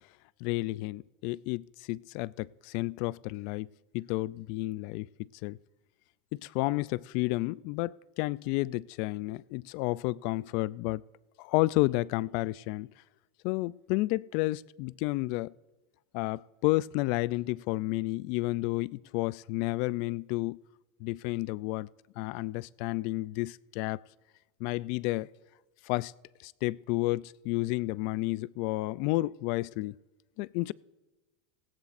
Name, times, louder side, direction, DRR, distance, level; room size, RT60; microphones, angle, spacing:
voice 1, 0.4-3.7 3.9-5.1 5.4-5.6 6.4-11.0 11.4-12.9 13.4-15.5 16.1-20.6 21.0-21.9 22.2-24.0 24.6-25.3 25.8-26.1 26.4-30.0 30.4-30.7, left 20 dB, 55° left, 0.3 m, -31 dB
17.0 x 17.0 x 2.6 m
supercardioid pair, 135°, 0 cm